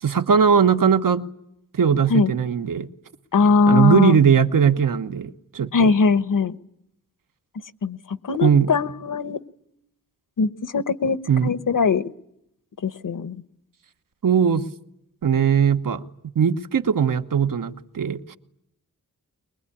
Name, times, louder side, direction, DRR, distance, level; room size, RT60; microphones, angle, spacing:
voice 1, 0.0-1.3 1.7-2.9 3.7-5.9 8.4-8.7 11.3-11.5 14.2-14.6 15.2-16.0 16.3-18.4, right 7 dB, 75° right, 9 dB, 1.3 m, -19 dB
voice 2, 3.3-4.2 5.7-6.6 7.8-9.4 10.4-12.0 12.8-13.4, left 4 dB, 70° left, 14 dB, 1.2 m, -20 dB
23.5 x 21.5 x 9.9 m, 0.78 s
wide cardioid pair, 135°, 33 cm